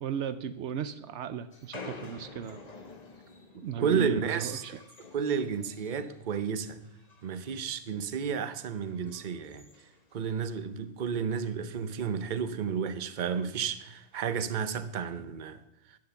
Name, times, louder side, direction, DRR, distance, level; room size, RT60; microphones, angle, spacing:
voice 1, 0.0-2.6 3.6-4.8, right 7 dB, 80° right, 1.0 m, -36 dB
sound 1, 1.5-6.3 6.6-7.6 7.9-8.2 8.7-10.7 11.0-11.1 11.3-11.4 11.7-12.1 13.0-13.1 13.9-14.3, left 3 dB, 35° left, 1.3 m, -50 dB
voice 2, 3.8-4.8 5.1-6.8 7.2-9.7 10.1-15.6, right 6 dB, 45° right, 0.9 m, -31 dB
10.5 x 10.0 x 7.0 m
omnidirectional pair, 1.2 m